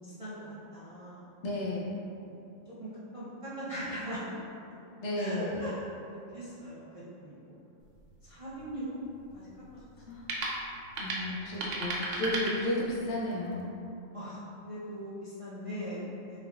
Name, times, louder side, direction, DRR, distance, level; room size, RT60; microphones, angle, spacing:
voice 1, 0.2-1.3 2.2-2.4 2.7-4.4 5.2-7.5 8.2-9.0 9.3-9.5 11.2-11.7 14.1-16.5, equal, 40° right, -11 dB, 0.5 m, -41 dB
voice 2, 1.4-2.0 5.0-5.7 10.0-10.2 11.0-13.7, left 1 dB, 70° left, -5 dB, 1.0 m, -33 dB
sound 1, 7.8-13.2, right 2 dB, 85° right, 1.0 m, -38 dB
3.5 x 3.4 x 2.3 m, 2.7 s
omnidirectional pair, 1.3 m